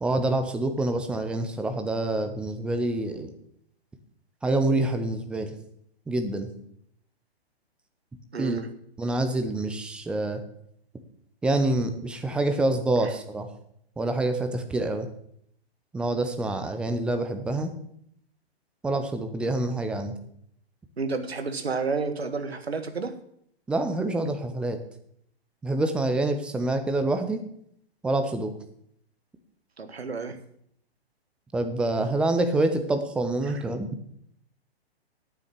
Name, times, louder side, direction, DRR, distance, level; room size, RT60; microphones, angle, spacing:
voice 1, 0.0-3.3 4.4-5.5 6.1-6.5 8.4-8.6 9.0-10.4 11.4-13.5 14.0-15.1 15.9-17.7 18.8-20.2 23.7-24.8 25.6-27.4 28.0-28.5 31.5-33.9, right 2 dB, 5° right, 7 dB, 0.5 m, -26 dB
voice 2, 8.3-8.7 21.0-23.1 29.8-30.4 33.5-33.6, right 4 dB, 70° right, 9 dB, 1.7 m, -30 dB
9.0 x 7.7 x 8.3 m, 0.70 s
figure-of-eight pair, 120°, 32 cm